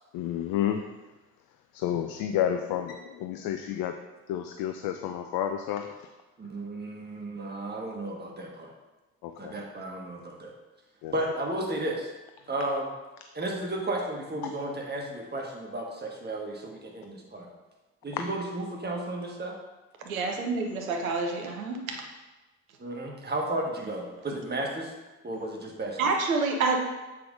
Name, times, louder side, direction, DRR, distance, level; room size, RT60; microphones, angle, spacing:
voice 1, 0.1-0.8 1.7-3.9 4.3-6.1 9.2-9.6 11.0-11.1 14.4-14.5 18.1-18.2, left 10 dB, 60° left, 6 dB, 0.5 m, -30 dB
voice 2, 6.4-8.7 9.4-10.5 11.1-12.1 12.5-12.9 13.3-17.5 18.0-19.5 22.8-24.9 25.2-26.0, right 1 dB, 25° right, -1 dB, 1.5 m, -33 dB
voice 3, 20.0-22.0 26.0-26.8, right 3 dB, 85° right, 3 dB, 0.7 m, -28 dB
7.5 x 5.7 x 2.5 m, 1.1 s
figure-of-eight pair, 45°, 41 cm